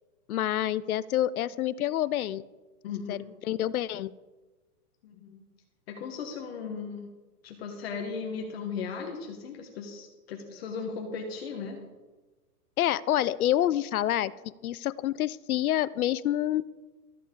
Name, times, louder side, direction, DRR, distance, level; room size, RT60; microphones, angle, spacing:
voice 1, 0.3-2.5 3.1-4.1 12.8-14.3 14.6-16.6, left 12 dB, 65° left, 19 dB, 0.5 m, -27 dB
voice 2, 2.8-3.4 5.0-5.4 5.9-7.1 7.4-11.8, left 5 dB, 40° left, 2 dB, 1.3 m, -37 dB
14.0 x 8.3 x 3.7 m, 1.2 s
hypercardioid pair, 160°, 47 cm